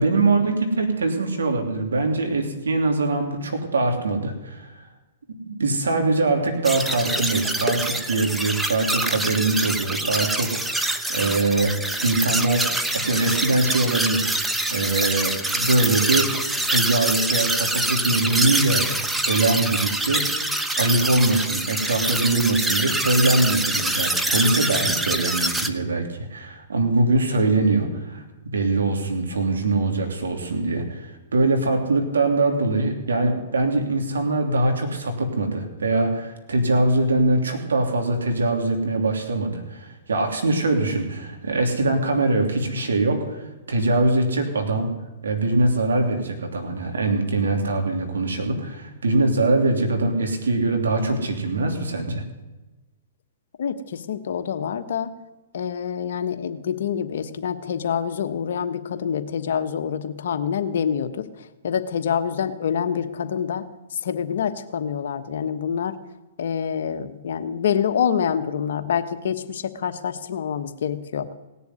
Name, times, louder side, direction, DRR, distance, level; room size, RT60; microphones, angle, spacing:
voice 1, 0.0-4.8 5.4-12.7 12.9-16.3 16.7-18.9 19.3-20.3 20.8-44.9 45.2-52.2, right 2 dB, 85° right, 4 dB, 3.0 m, -23 dB
sound 1, 6.6-25.7, right 1 dB, 5° right, 1.0 m, -25 dB
voice 2, 53.6-55.1 55.5-63.6 63.9-65.9 66.4-71.3, left 8 dB, 70° left, 9 dB, 1.2 m, -26 dB
18.0 x 7.0 x 9.5 m, 1.1 s
hypercardioid pair, 125°, 0 cm